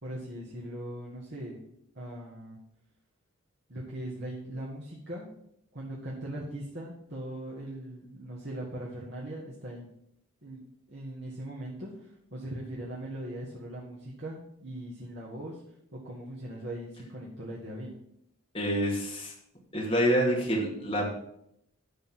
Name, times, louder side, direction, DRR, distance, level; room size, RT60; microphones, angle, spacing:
voice 1, 0.0-1.6 1.9-2.6 3.7-5.3 5.7-9.9 10.4-15.6 15.9-17.9, right 1 dB, 50° right, -5 dB, 1.8 m, -40 dB
voice 2, 18.5-19.3 19.7-21.1, equal, 25° left, -2 dB, 2.4 m, -27 dB
12.0 x 4.1 x 7.5 m, 0.75 s
head